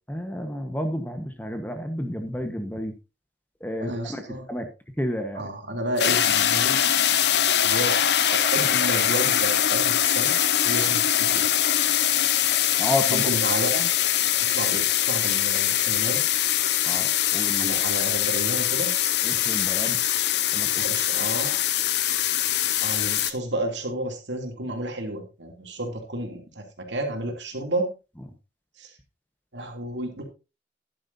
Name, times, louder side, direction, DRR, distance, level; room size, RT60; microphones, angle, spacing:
voice 1, 0.1-3.0 3.6-4.7 5.0-5.5 12.8-13.3 16.8-17.8 19.2-20.0 20.5-20.8, left 1 dB, 10° left, 6 dB, 1.2 m, -31 dB
voice 2, 3.8-4.5 5.4-6.8 7.6-8.0 8.3-10.3 10.6-11.5 13.1-13.9 14.5-16.2 17.6-18.9 20.8-21.7 22.8-27.9 28.8-28.9 29.5-30.2, right 1 dB, 85° right, 2 dB, 3.0 m, -31 dB
sound 1, 6.0-23.3, left 11 dB, 70° left, 0.8 m, -23 dB
13.0 x 11.0 x 2.7 m, 0.29 s
head